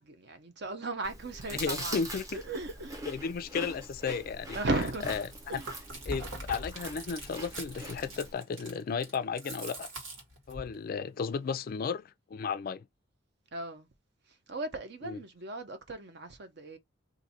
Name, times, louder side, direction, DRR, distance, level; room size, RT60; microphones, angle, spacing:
voice 1, 0.0-2.0 2.3-3.1 4.5-5.1 5.5-5.7 13.5-13.9 14.3-16.8, right 2 dB, 55° right, 0.8 m, -36 dB
Chewing mastication, 1.0-8.3, right 1 dB, 15° right, 0.7 m, -43 dB
voice 2, 1.5-2.2 3.1-4.6 5.1-5.3 5.5-5.6 6.1-9.9 10.5-12.9 15.0-15.2, left 5 dB, 45° left, 0.3 m, -34 dB
Chewing mastication 2, 4.7-10.7, right 1 dB, 90° right, 1.5 m, -43 dB
2.6 x 2.4 x 4.1 m
head